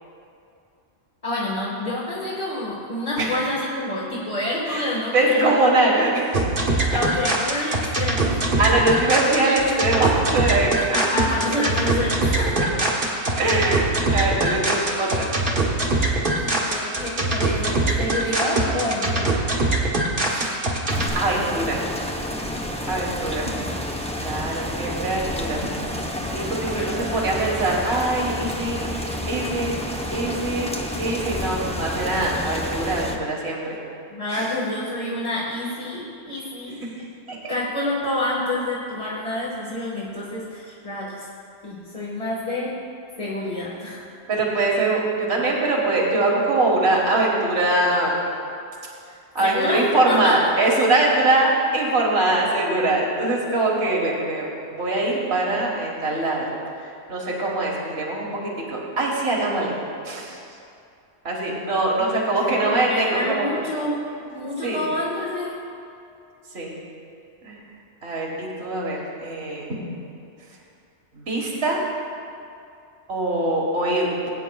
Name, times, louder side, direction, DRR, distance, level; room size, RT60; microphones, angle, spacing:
voice 1, 1.2-6.0 6.9-8.5 10.9-12.5 16.3-19.3 26.7-26.9 34.1-36.8 37.5-41.3 41.6-42.9 43.2-44.0 49.4-50.4 62.0-65.6, left 1 dB, 30° left, -7 dB, 1.5 m, -28 dB
voice 2, 4.7-6.2 8.6-11.0 12.6-12.7 13.3-13.8 14.1-15.3 20.2-20.7 21.1-21.8 22.9-23.5 24.2-25.7 26.3-29.8 30.1-33.8 34.3-34.6 36.8-36.9 37.3-37.5 44.3-48.2 49.4-56.5 57.1-59.7 60.1-60.4 61.2-63.5 64.6-64.8 66.5-66.7 67.4-67.6 68.0-69.7 71.1-71.8 73.1-74.1, right 2 dB, 70° right, -2 dB, 1.8 m, -23 dB
sound 1, 6.3-21.1, right 2 dB, 50° right, 1.5 m, -23 dB
sound 2, 20.9-33.2, left 1 dB, 5° left, 0.6 m, -30 dB
21.5 x 9.0 x 2.3 m, 2.6 s
omnidirectional pair, 1.2 m